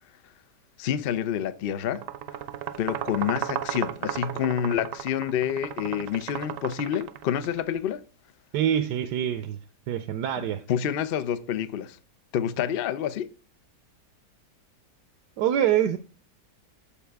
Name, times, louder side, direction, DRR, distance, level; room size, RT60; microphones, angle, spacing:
voice 1, 0.8-2.0 2.8-8.0 10.4-12.0 12.3-13.3, left 9 dB, 90° left, 0.5 m, -28 dB
sound 1, 1.9-7.6, right 10 dB, 65° right, 0.8 m, -34 dB
voice 2, 8.5-9.6 9.9-10.6 15.4-16.0, right 10 dB, 85° right, 1.3 m, -25 dB
14.0 x 5.0 x 3.5 m
omnidirectional pair, 1.8 m